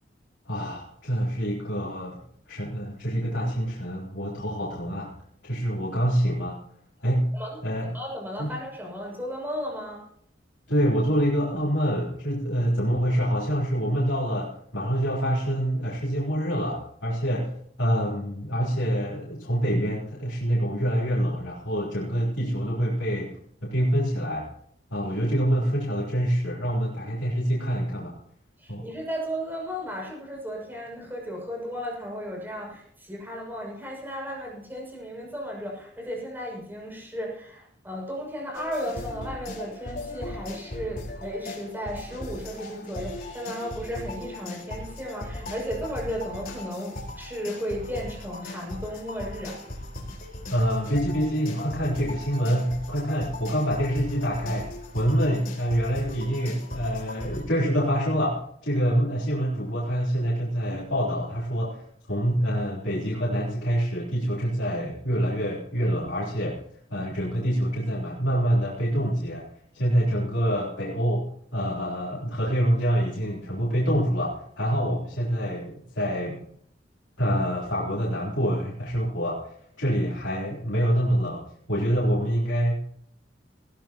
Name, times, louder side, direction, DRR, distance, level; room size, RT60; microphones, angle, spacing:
voice 1, 0.5-2.2 2.5-5.1 5.4-6.6 7.0-7.4 7.6-7.9 8.4-8.5 10.7-17.5 17.8-24.5 24.9-28.1 28.7-28.9 50.5-66.6 66.9-69.5 69.7-76.4 77.2-81.4 81.7-82.8, equal, 85° left, -6 dB, 3.5 m, -26 dB
voice 2, 7.9-10.0 28.6-49.6, equal, 10° right, -2 dB, 6.7 m, -34 dB
sound 1, 38.5-57.4, left 1 dB, 50° left, 4.6 m, -38 dB
19.5 x 15.0 x 3.0 m, 0.66 s
head